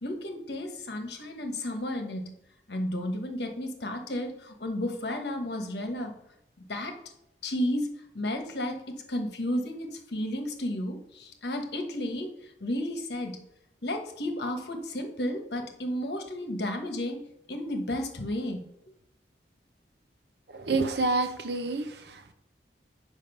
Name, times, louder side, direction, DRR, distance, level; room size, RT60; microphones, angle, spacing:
voice 1, 0.0-2.3 2.7-6.2 6.6-7.0 7.4-7.9 8.1-13.4 13.8-17.2 17.5-18.7, left 1 dB, 70° left, 4 dB, 1.2 m, -33 dB
voice 2, 20.5-22.3, right 3 dB, 65° right, 8 dB, 0.8 m, -28 dB
7.4 x 5.1 x 5.4 m, 0.75 s
head